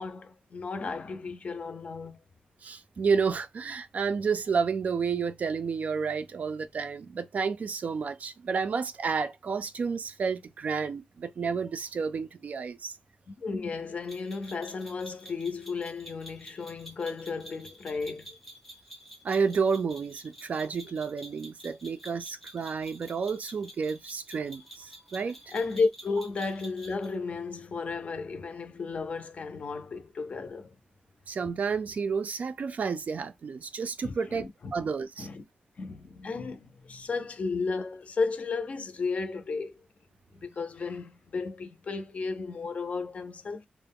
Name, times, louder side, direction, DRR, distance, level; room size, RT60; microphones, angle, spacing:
voice 1, 0.0-2.2 13.3-18.4 25.5-30.7 34.0-34.5 35.2-35.4 35.8-39.8 40.3-43.7, left 4 dB, 45° left, 0.4 m, -33 dB
voice 2, 2.6-13.0 19.2-25.5 31.3-35.3, right 5 dB, 55° right, 0.3 m, -31 dB
sound 1, 14.1-27.1, equal, 5° left, 0.6 m, -49 dB
2.3 x 2.0 x 3.4 m
wide cardioid pair, 155°, 3 cm